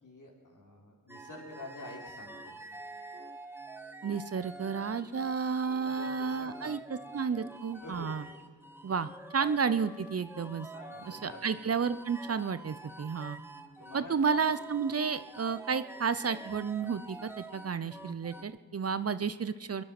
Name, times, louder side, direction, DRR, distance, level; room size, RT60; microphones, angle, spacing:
voice 1, 0.0-2.6 5.8-6.8 7.8-8.4 10.7-11.4 13.8-14.2, left 2 dB, 60° left, -1 dB, 3.8 m, -48 dB
sound 1, 1.1-18.4, right 2 dB, 5° right, 1.2 m, -47 dB
voice 2, 4.0-8.2 8.8-10.7 11.1-13.4 13.9-19.8, right 6 dB, 45° right, 14 dB, 0.7 m, -32 dB
21.5 x 11.0 x 6.0 m, 1.4 s
cardioid pair, 50°, 35 cm